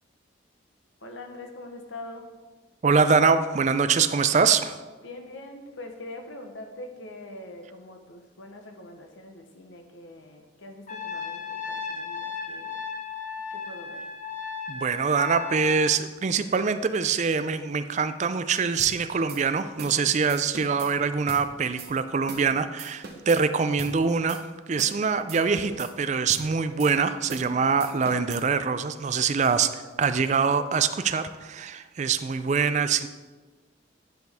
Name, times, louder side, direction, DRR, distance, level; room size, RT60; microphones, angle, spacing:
voice 1, 1.0-2.3 5.0-12.8 13.5-14.1, left 2 dB, 80° left, 5 dB, 1.1 m, -43 dB
voice 2, 2.8-4.8 14.7-33.1, right 5 dB, 35° right, 11 dB, 0.4 m, -24 dB
Trumpet, 10.9-15.9, left 6 dB, 40° left, 0.8 m, -35 dB
sound 1, 18.8-19.0 19.3-19.4 19.8-20.0 20.3-20.9 21.3-21.4 21.8-21.9 22.3-22.5 22.8-23.4 23.8-24.0 24.3-24.4 24.8-25.0 25.3-25.9 26.3-26.5 26.8-26.9 27.3-27.5 27.8-28.4, right 4 dB, 55° right, 1.0 m, -40 dB
10.5 x 6.0 x 3.5 m, 1.3 s
head